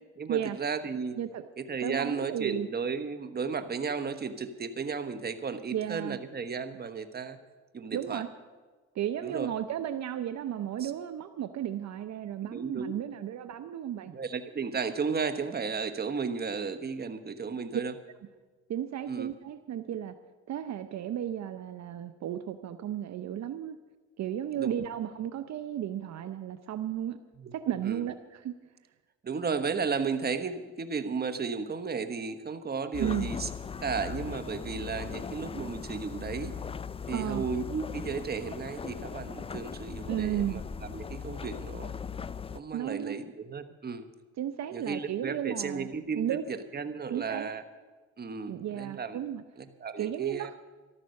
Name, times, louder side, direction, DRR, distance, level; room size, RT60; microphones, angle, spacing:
voice 1, 0.2-1.2 1.6-7.4 7.7-8.2 9.2-9.5 10.8-10.9 12.5-12.9 14.1-17.9 19.1-19.3 24.5-24.7 27.4-28.0 29.2-33.5 33.8-36.5 37.1-41.9 42.5-44.1 44.7-47.6 48.2-49.2 49.6-50.5, right 5 dB, 30° right, 9 dB, 1.2 m, -34 dB
voice 2, 1.2-1.5 1.8-2.7 5.7-6.2 7.9-8.3 8.9-14.1 17.7-17.8 18.7-20.2 20.5-23.8 24.2-27.2 27.5-28.5 33.0-33.3 37.1-37.4 40.1-40.6 42.7-43.2 44.4-45.9 46.2-46.4 47.1-47.5 48.5-49.4 50.0-50.5, right 10 dB, 65° right, 10 dB, 0.7 m, -34 dB
sound 1, 32.9-42.6, left 6 dB, 20° left, 0.4 m, -39 dB
14.0 x 12.5 x 6.5 m, 1.3 s
cardioid pair, 90°, 30 cm